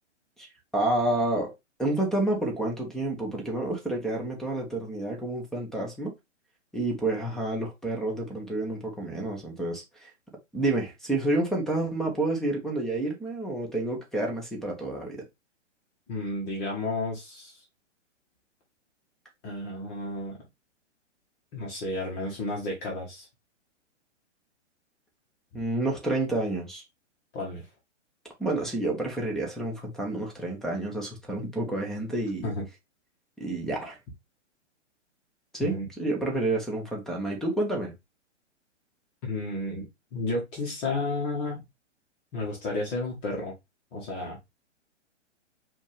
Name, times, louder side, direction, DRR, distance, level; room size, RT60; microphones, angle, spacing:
voice 1, 0.7-1.5 1.8-6.1 6.7-10.1 10.5-15.2 25.5-26.8 28.4-32.5 33.4-34.0 35.5-37.9, right 2 dB, ahead, 1.4 m, -29 dB
voice 2, 16.1-17.6 19.4-20.4 21.5-23.3 27.3-27.7 32.4-32.6 35.6-35.9 39.2-41.6 42.3-43.5 43.9-44.4, left 2 dB, 30° left, 1.6 m, -32 dB
5.0 x 2.9 x 3.5 m
figure-of-eight pair, 125°, 37 cm